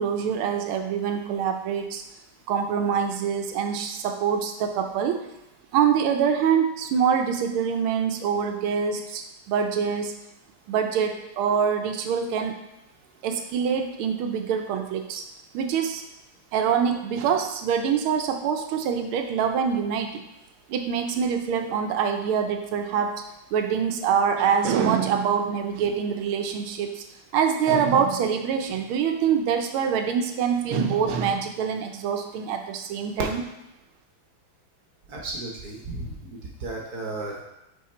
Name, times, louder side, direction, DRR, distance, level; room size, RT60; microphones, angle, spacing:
voice 1, 0.0-2.0 2.5-5.3 5.7-10.1 10.7-12.5 13.2-15.2 15.5-16.0 16.5-20.2 20.7-23.2 23.5-27.0 27.3-33.4, right 7 dB, 85° right, 6 dB, 1.5 m, -25 dB
voice 2, 35.1-37.4, right 2 dB, 55° right, -1 dB, 1.2 m, -34 dB
5.6 x 4.2 x 4.3 m, 0.88 s
omnidirectional pair, 2.3 m